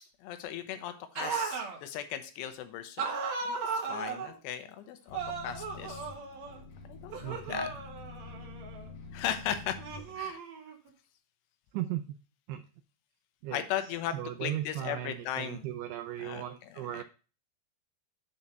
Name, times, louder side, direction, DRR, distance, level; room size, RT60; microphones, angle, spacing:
voice 1, 0.2-3.1 3.4-5.2 5.4-6.1 6.9-7.7 9.1-9.8 10.2-10.4 13.5-15.7 16.2-17.0, left 10 dB, 80° left, 9 dB, 2.8 m, -37 dB
sound 1, 1.2-1.8 3.0-4.3 5.1-6.6 7.1-8.9 9.8-10.9, right 5 dB, 65° right, 1.7 m, -36 dB
sound 2, 5.1-10.2, left 4 dB, 60° left, 2.3 m, -47 dB
voice 2, 7.2-7.7 11.7-12.2 12.5-12.6 13.4-13.6 14.1-17.0, right 12 dB, 90° right, 10 dB, 2.2 m, -37 dB
7.1 x 4.2 x 6.5 m, 0.36 s
omnidirectional pair, 5.1 m